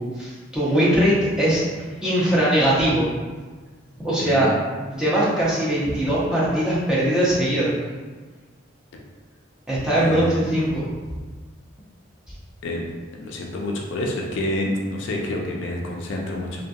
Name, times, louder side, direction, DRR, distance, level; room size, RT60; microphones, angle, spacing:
voice 1, 0.0-1.6 2.0-3.1 4.0-4.5 4.9-7.7 9.7-10.9, right 1 dB, 5° right, -9 dB, 0.6 m, -21 dB
voice 2, 4.1-4.5 9.9-10.4 12.6-12.8 13.1-16.6, left 1 dB, 70° left, 0 dB, 0.4 m, -28 dB
2.8 x 2.5 x 2.2 m, 1.4 s
head